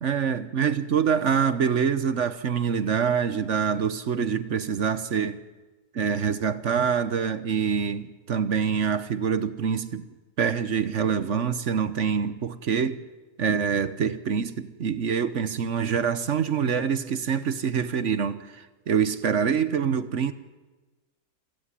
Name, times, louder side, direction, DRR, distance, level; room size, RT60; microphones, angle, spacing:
voice 1, 0.0-5.4 5.9-10.0 10.4-13.0 13.4-20.3, right 7 dB, 55° right, 1.2 m, -25 dB
28.0 x 13.5 x 10.0 m
omnidirectional pair, 1.6 m